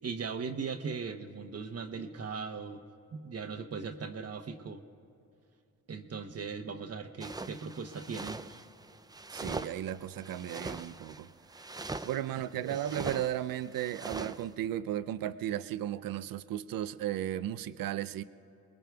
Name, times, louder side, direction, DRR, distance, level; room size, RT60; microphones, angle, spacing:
voice 1, 0.0-2.8 3.1-4.8 5.9-8.6 11.9-12.0 12.6-12.9, right 5 dB, 45° right, 5 dB, 0.9 m, -39 dB
sound 1, 7.2-14.4, right 3 dB, 10° right, 0.4 m, -42 dB
voice 2, 9.3-11.3 12.0-18.2, right 11 dB, 75° right, 13 dB, 0.6 m, -35 dB
29.5 x 21.0 x 2.3 m, 2.6 s
cardioid pair, 75°, 34 cm